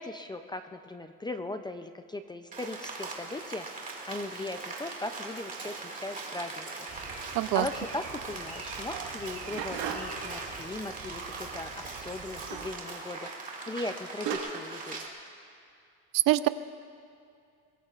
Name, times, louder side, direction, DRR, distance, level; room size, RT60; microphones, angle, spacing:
voice 1, 0.0-3.7 4.1-6.7 7.5-13.3 13.7-15.0, left 2 dB, 15° left, 8 dB, 0.4 m, -38 dB
Rain, 2.5-15.1, right 3 dB, 20° right, 2.1 m, -40 dB
sound 1, 6.9-12.7, right 5 dB, 45° right, 3.4 m, -47 dB
voice 2, 7.3-7.7 16.1-16.5, right 17 dB, 65° right, 13 dB, 0.6 m, -24 dB
sound 2, 8.9-10.3 12.5-12.8 13.8-13.9 14.3-14.4, right 9 dB, 80° right, 1.6 m, -36 dB
23.0 x 22.0 x 2.4 m, 2.4 s
cardioid pair, 140°, 36 cm